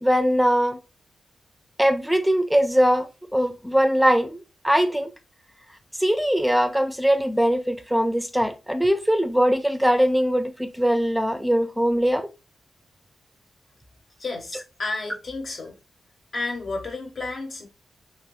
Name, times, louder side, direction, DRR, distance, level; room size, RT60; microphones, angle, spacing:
voice 1, 0.0-0.8 1.8-4.4 4.6-5.1 6.0-12.3, equal, ahead, 0.5 m, -21 dB
voice 2, 14.2-15.7 16.3-17.7, left 3 dB, 55° left, 0.9 m, -31 dB
2.7 x 2.5 x 3.4 m
cardioid pair, 85°, 0 cm